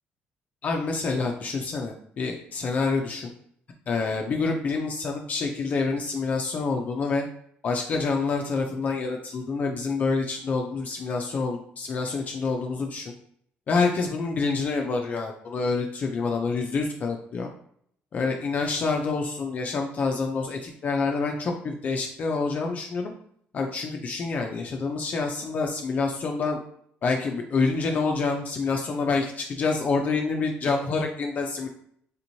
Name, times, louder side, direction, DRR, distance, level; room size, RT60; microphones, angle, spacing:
voice 1, 0.6-3.3 3.9-7.2 7.6-13.1 13.7-17.5 18.1-23.1 23.5-26.6 27.0-31.7, left 4 dB, 40° left, 2 dB, 0.4 m, -27 dB
3.4 x 2.9 x 2.7 m, 0.66 s
cardioid pair, 120°, 4 cm